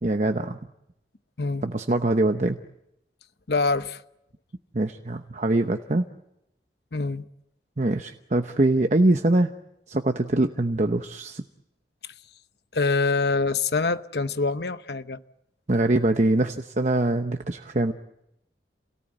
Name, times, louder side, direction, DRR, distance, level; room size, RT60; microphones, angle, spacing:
voice 1, 0.0-0.6 1.6-2.6 4.7-6.0 7.8-9.5 9.9-11.4 15.7-17.9, right 2 dB, 40° right, 0.9 m, -23 dB
voice 2, 3.5-4.0 6.9-7.2 12.7-15.2, left 3 dB, 65° left, 0.9 m, -25 dB
28.0 x 18.5 x 8.9 m
head